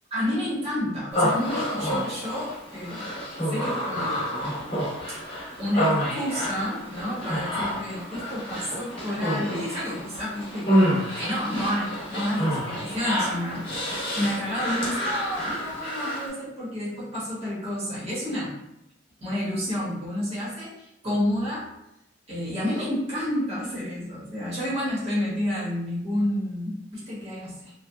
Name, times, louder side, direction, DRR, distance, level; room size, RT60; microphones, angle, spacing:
voice 1, 0.1-3.1 3.4-4.3 5.1-5.2 5.6-10.8 11.2-13.7 14.0-18.5 19.2-21.7 22.3-27.7, equal, 35° right, -7 dB, 0.9 m, -30 dB
Human voice, 1.1-16.3, equal, 30° left, 0.8 m, -28 dB
2.6 x 2.1 x 2.2 m, 0.85 s
head